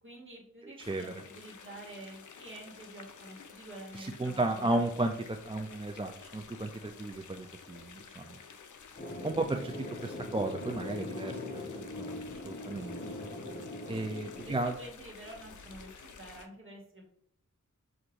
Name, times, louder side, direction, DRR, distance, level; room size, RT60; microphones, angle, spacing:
voice 1, 0.0-4.9 14.4-17.0, right 1 dB, 40° right, -1 dB, 1.4 m, -48 dB
sound 1, 0.8-16.5, left 5 dB, 70° left, 0.5 m, -52 dB
voice 2, 4.0-8.4 9.2-13.0 13.9-14.7, right 2 dB, 15° right, 4 dB, 0.3 m, -34 dB
sound 2, 9.0-14.6, left 1 dB, 30° left, 0.8 m, -41 dB
6.2 x 2.6 x 2.9 m, 0.71 s
wide cardioid pair, 50°, 32 cm